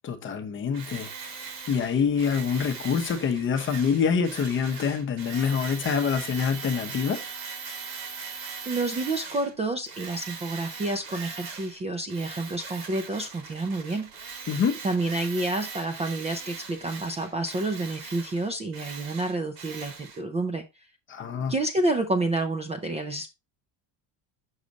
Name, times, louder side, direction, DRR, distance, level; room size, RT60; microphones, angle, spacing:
voice 1, 0.0-7.2 14.5-14.8 21.1-21.5, left 6 dB, 25° left, 0.8 m, -26 dB
Tools, 0.7-9.5 9.9-11.8 12.1-20.2, right 5 dB, 80° right, 3.5 m, -40 dB
voice 2, 8.7-14.1 14.8-20.6 21.5-23.3, right 2 dB, 15° right, 0.5 m, -29 dB
6.5 x 4.9 x 4.0 m
cardioid pair, 165°, 44 cm